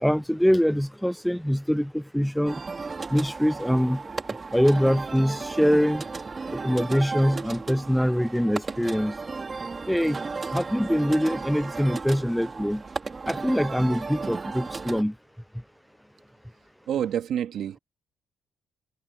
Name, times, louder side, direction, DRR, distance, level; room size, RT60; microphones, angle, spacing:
voice 1, 0.0-1.9 2.1-2.5 3.1-4.0 4.5-6.0 6.6-9.1 9.9-10.2 10.5-12.8 13.3-15.1, equal, ahead, 0.4 m, -23 dB
sound 1, 2.5-15.0, right 4 dB, 30° right, 3.6 m, -34 dB
voice 2, 16.9-17.8, right 9 dB, 70° right, 1.8 m, -28 dB
cardioid pair, 90°, 0 cm